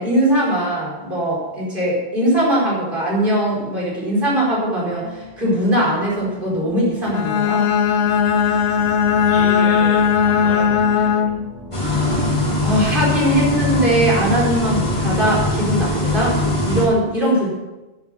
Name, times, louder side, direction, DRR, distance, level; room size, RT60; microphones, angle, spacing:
voice 1, 0.0-7.6 11.7-17.5, right 1 dB, 50° right, -5 dB, 5.0 m, -20 dB
sound 1, 3.7-15.4, left 3 dB, 20° right, 5.8 m, -38 dB
Bowed string instrument, 7.1-11.6, left 7 dB, 85° left, 1.1 m, -17 dB
voice 2, 9.3-11.3, equal, 55° left, -5 dB, 4.9 m, -32 dB
sound 2, 11.7-16.9, left 2 dB, 30° left, 2.4 m, -21 dB
11.0 x 9.4 x 6.8 m, 1.1 s
omnidirectional pair, 1.1 m